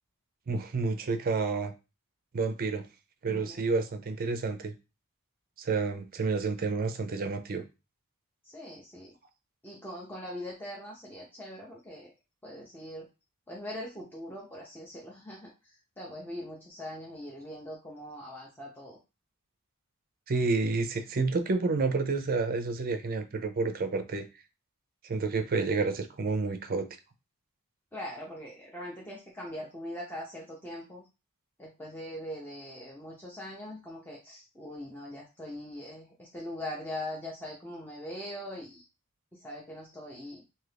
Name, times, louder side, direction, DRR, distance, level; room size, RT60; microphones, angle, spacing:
voice 1, 0.5-1.7 2.3-2.9 3.2-4.7 5.6-7.6 20.3-24.2 25.0-26.9, right 4 dB, 40° right, 8 dB, 0.4 m, -29 dB
voice 2, 3.3-3.6 8.4-9.1 9.6-12.1 12.4-13.1 13.5-15.5 16.0-19.0 27.9-31.0 31.6-38.9 39.4-40.4, left 1 dB, 10° left, -4 dB, 0.6 m, -41 dB
2.7 x 2.5 x 3.3 m, 0.28 s
head